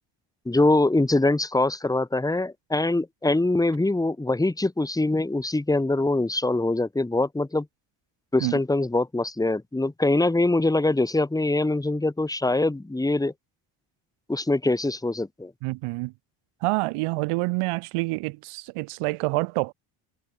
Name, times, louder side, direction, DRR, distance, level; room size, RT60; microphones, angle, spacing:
voice 1, 0.4-7.6 8.3-13.3 14.3-15.5, left 2 dB, 5° left, 1.7 m, -23 dB
voice 2, 15.6-16.1 16.6-19.7, right 24 dB, 85° right, 4.2 m, -27 dB
cardioid pair, 90°, 49 cm